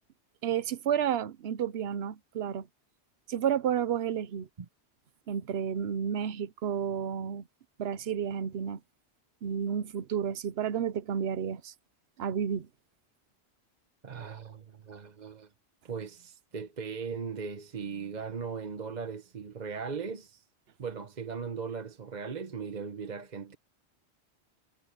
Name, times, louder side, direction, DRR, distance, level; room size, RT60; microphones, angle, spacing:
voice 1, 0.4-2.7 3.3-4.5 5.3-7.4 7.8-8.8 9.4-11.7 12.2-12.7, right 8 dB, 65° right, 1.0 m, -31 dB
voice 2, 14.0-15.5 15.8-20.4 20.8-23.6, right 5 dB, 45° right, 1.0 m, -38 dB
omnidirectional pair, 1.1 m